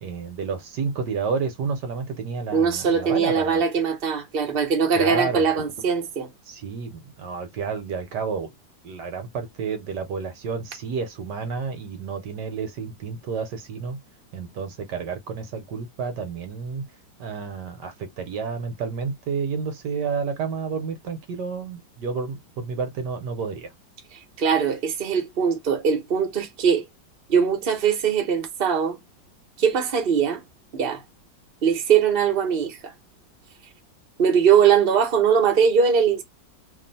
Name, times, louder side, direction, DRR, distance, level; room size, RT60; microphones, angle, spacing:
voice 1, 0.0-3.6 4.9-5.5 6.5-8.5 8.8-14.0 14.3-16.8 17.2-23.7, right 5 dB, 65° right, 1.4 m, -30 dB
voice 2, 2.5-6.3 24.4-26.8 27.3-29.0 29.6-30.4 30.7-31.0 31.6-32.9 34.2-36.2, right 7 dB, 40° right, 1.0 m, -21 dB
3.0 x 2.6 x 4.0 m
omnidirectional pair, 2.1 m